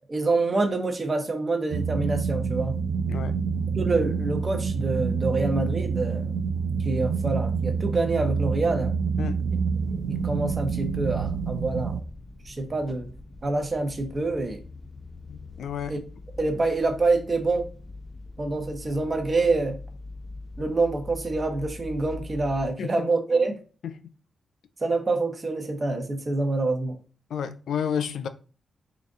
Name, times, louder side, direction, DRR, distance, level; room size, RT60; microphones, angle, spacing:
voice 1, 0.1-2.8 3.8-6.3 6.8-9.0 9.9-12.0 12.4-13.1 13.4-14.6 15.9-16.0 16.4-17.7 18.4-19.8 20.6-23.5 24.8-27.0, right 3 dB, 35° right, 1.0 m, -26 dB
sound 1, 1.7-12.0, right 5 dB, 75° right, 0.4 m, -27 dB
voice 2, 3.1-3.4 9.2-9.4 15.3-16.0 22.8-22.9 23.8-23.9 27.3-28.3, left 8 dB, 80° left, 0.4 m, -31 dB
sound 2, 9.5-22.7, left 2 dB, 20° left, 0.7 m, -42 dB
3.9 x 2.5 x 3.6 m
cardioid pair, 70°, 0 cm